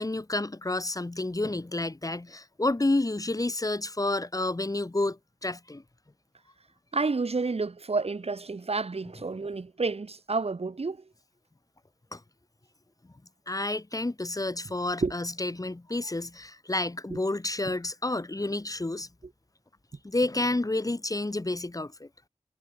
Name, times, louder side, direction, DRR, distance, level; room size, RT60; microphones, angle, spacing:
voice 1, 0.0-5.8 12.1-12.2 13.5-19.1 20.0-22.1, left 2 dB, 30° left, 1.4 m, -30 dB
voice 2, 6.9-11.0 15.0-15.1, right 4 dB, 55° right, 1.4 m, -30 dB
wide cardioid pair, 60°, 12 cm